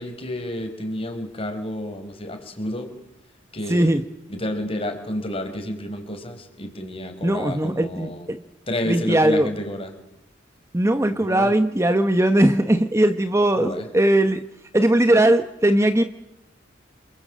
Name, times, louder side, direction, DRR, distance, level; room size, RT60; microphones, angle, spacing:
voice 1, 0.0-2.9 3.5-3.9 4.3-8.3 8.7-9.9 11.2-11.5 13.6-13.9, left 1 dB, 30° left, 6 dB, 4.5 m, -30 dB
voice 2, 3.7-4.0 7.2-8.4 8.9-9.5 10.7-14.4 14.7-16.0, right 1 dB, 15° right, 9 dB, 0.9 m, -19 dB
28.0 x 22.0 x 7.7 m, 0.88 s
head